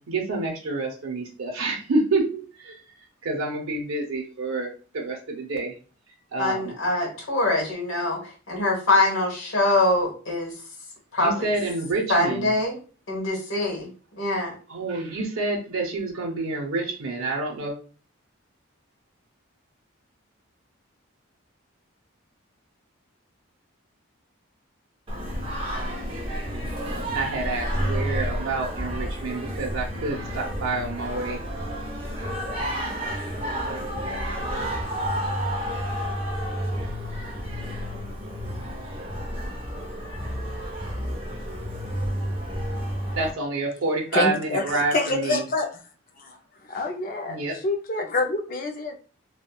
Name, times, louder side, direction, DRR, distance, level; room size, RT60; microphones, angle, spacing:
voice 1, 0.1-2.8 3.2-5.8 6.3-6.7 11.2-12.5 14.7-17.8 27.1-31.4 43.2-45.4 47.3-47.6, right 3 dB, 85° right, 0 dB, 0.6 m, -28 dB
voice 2, 6.4-10.5 11.1-11.5 12.1-12.8 13.1-13.9 14.2-14.5, left 2 dB, 75° left, -3 dB, 1.2 m, -24 dB
Singing, 25.1-43.3, equal, 25° right, 0.6 m, -30 dB
voice 3, 44.1-45.7 46.2-46.4 46.7-48.9, left 2 dB, 40° left, 4 dB, 0.4 m, -27 dB
3.4 x 2.2 x 2.2 m, 0.37 s
head